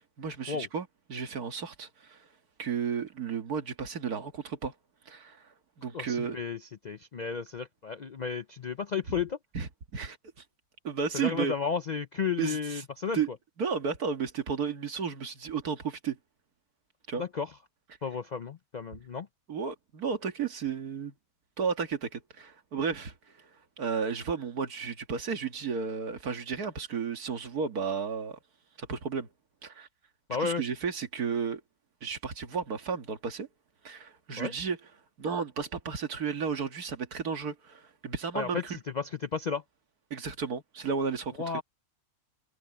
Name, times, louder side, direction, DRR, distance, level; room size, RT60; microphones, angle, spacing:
voice 1, 0.0-2.2 2.6-4.7 5.1-5.4 5.8-6.4 9.5-10.2 10.8-11.5 12.4-12.9 13.1-13.3 13.6-16.2 17.1-17.2 19.5-21.1 21.6-23.1 23.8-28.4 28.8-29.3 29.6-29.9 30.4-31.6 32.0-33.5 33.8-34.8 35.2-38.8 40.1-41.6, right 6 dB, 85° right, 2.2 m, -33 dB
voice 2, 5.9-6.6 6.8-9.4 11.1-13.2 17.2-17.5 18.0-19.3 30.3-30.6 34.4-34.5 38.3-38.6 38.9-39.6 41.4-41.6, left 6 dB, 60° left, 0.4 m, -33 dB
omnidirectional pair, 1.6 m